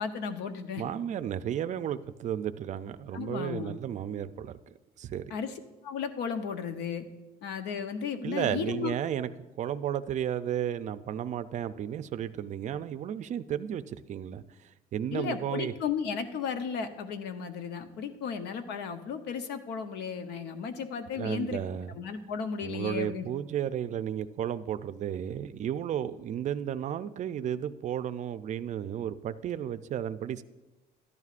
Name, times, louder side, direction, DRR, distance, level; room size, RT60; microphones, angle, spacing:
voice 1, 0.0-0.8 3.1-3.7 5.3-5.5 5.8-7.1 7.4-8.9 15.1-23.3, left 6 dB, 80° left, 8 dB, 0.8 m, -34 dB
voice 2, 0.8-4.6 5.0-5.3 8.2-9.3 9.6-15.7 21.2-21.9 22.6-30.4, right 10 dB, 45° right, 12 dB, 0.4 m, -33 dB
13.5 x 11.0 x 2.5 m, 1.1 s
cardioid pair, 110°, 17 cm